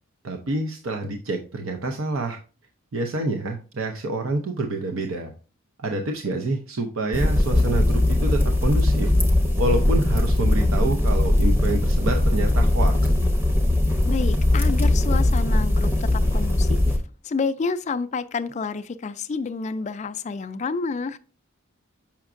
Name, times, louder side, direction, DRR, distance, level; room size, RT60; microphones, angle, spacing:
voice 1, 0.2-2.4 2.9-5.3 5.8-9.1 9.6-13.1, right 2 dB, 70° right, 0.6 m, -27 dB
sound 1, 7.1-17.0, left 1 dB, 10° right, 0.8 m, -20 dB
voice 2, 14.1-17.0 17.2-21.2, left 4 dB, 35° left, 0.3 m, -29 dB
7.1 x 5.8 x 2.5 m
head